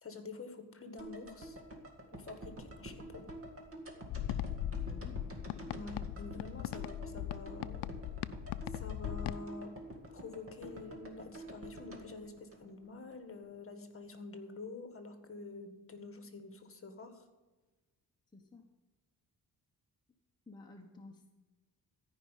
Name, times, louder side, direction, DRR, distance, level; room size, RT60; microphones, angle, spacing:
voice 1, 0.0-1.6 2.1-3.3 5.7-7.9 8.7-9.7 10.1-17.2, left 3 dB, 35° left, 7 dB, 1.7 m, -47 dB
sound 1, 1.0-13.2 13.4-13.5, right 1 dB, 35° right, 2.1 m, -48 dB
sound 2, 4.1-9.4, left 11 dB, 80° left, 0.6 m, -39 dB
voice 2, 4.8-5.7 18.3-18.6 20.5-21.3, left 2 dB, 10° left, 0 dB, 1.1 m, -53 dB
14.0 x 5.6 x 9.1 m, 1.2 s
cardioid pair, 110°, 40 cm